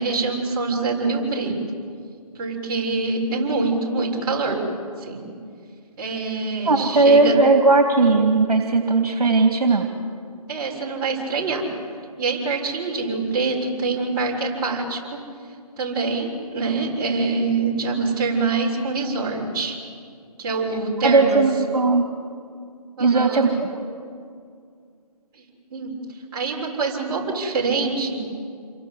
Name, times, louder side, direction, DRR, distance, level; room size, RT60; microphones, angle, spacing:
voice 1, 0.0-1.6 2.4-4.6 5.0-5.2 6.0-7.4 10.5-11.7 12.2-15.0 15.8-19.8 20.4-21.4 23.0-23.5 25.7-25.9 26.3-28.2, right 3 dB, 35° right, -3 dB, 6.9 m, -25 dB
voice 2, 6.6-9.9 21.0-22.1 23.0-23.7, right 3 dB, 70° right, 4 dB, 2.9 m, -17 dB
29.0 x 23.5 x 8.5 m, 2.3 s
figure-of-eight pair, 145°, 20 cm